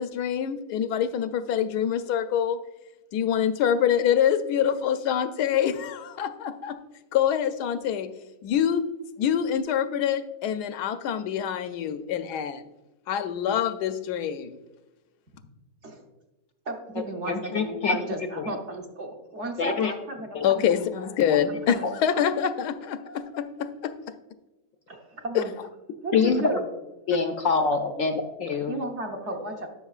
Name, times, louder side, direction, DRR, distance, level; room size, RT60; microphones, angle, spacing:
voice 1, 0.0-2.6 3.1-6.8 7.1-8.1 8.4-8.9 9.2-12.6 13.1-14.6 20.4-23.9 25.3-25.4, left 9 dB, 85° left, 10 dB, 1.2 m, -25 dB
voice 2, 16.7-20.4 21.5-21.9 24.9-25.5 26.0-26.7 27.9-28.1 28.7-29.7, right 2 dB, 50° right, 2 dB, 1.1 m, -34 dB
voice 3, 17.3-18.0 18.4-18.5 19.6-19.9 20.3-20.4 26.1-26.6 27.1-28.7, left 5 dB, 70° left, 6 dB, 0.8 m, -25 dB
12.0 x 5.8 x 2.4 m, 1.0 s
omnidirectional pair, 1.7 m